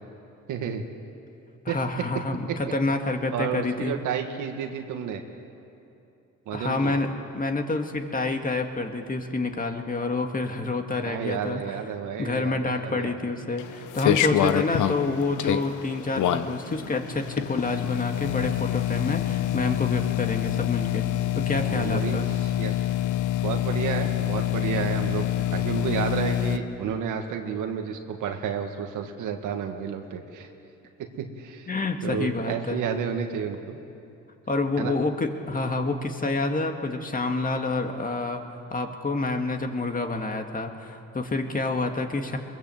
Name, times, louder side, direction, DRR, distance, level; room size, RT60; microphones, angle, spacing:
voice 1, 0.5-0.8 1.7-2.6 3.3-5.2 6.5-7.0 11.0-13.3 21.7-22.9 23.4-30.5 31.2-31.7 32.0-33.8 34.8-34.9, right 7 dB, 85° right, 4 dB, 1.9 m, -31 dB
voice 2, 1.7-3.9 6.5-11.6 12.2-21.1 21.3-22.3 31.7-32.8 34.5-38.4 38.7-42.4, left 3 dB, 30° left, 4 dB, 2.0 m, -28 dB
sound 1, 13.6-26.6, left 12 dB, 80° left, 1.0 m, -26 dB
22.5 x 20.5 x 7.8 m, 2.8 s
cardioid pair, 90°, 30 cm